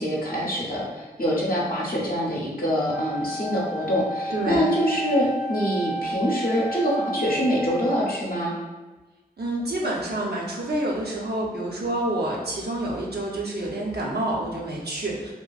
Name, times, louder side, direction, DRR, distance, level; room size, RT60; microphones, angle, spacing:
voice 1, 0.0-8.5, equal, 60° left, -4 dB, 0.6 m, -25 dB
Wind instrument woodwind instrument, 2.9-8.4, right 1 dB, ahead, 0.3 m, -32 dB
voice 2, 4.3-4.6 9.4-15.3, right 1 dB, 80° right, -3 dB, 0.6 m, -28 dB
3.0 x 2.2 x 2.3 m, 1.2 s
wide cardioid pair, 40°, 16 cm